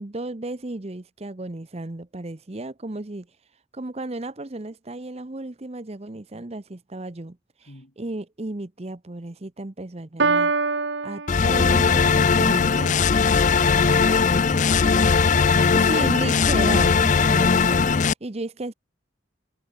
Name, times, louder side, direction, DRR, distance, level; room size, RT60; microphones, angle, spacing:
voice 1, 0.0-3.3 3.7-7.7 8.0-10.5 11.0-13.2 15.7-18.7, right 2 dB, 35° right, 0.8 m, -34 dB
voice 2, 7.7-8.0, left 1 dB, 65° left, 3.8 m, -45 dB
Piano, 10.2-12.2, right 4 dB, 70° right, 1.4 m, -25 dB
sound 1, 11.3-18.1, left 5 dB, 40° left, 0.5 m, -19 dB
head